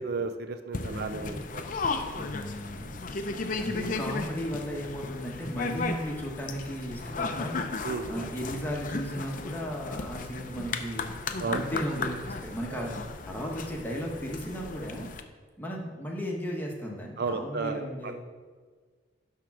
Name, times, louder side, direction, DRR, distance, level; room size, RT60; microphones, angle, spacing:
voice 1, 0.0-1.7 2.8-3.0 7.8-8.3 11.4-11.7 12.7-12.9 17.2-18.1, right 4 dB, 60° right, 8 dB, 0.5 m, -34 dB
sound 1, 0.7-15.2, left 3 dB, 50° left, 0.6 m, -35 dB
voice 2, 0.8-1.4 2.2-11.1 11.5-15.1 15.6-18.1, equal, 10° left, -1 dB, 1.3 m, -36 dB
10.5 x 3.7 x 6.0 m, 1.5 s
head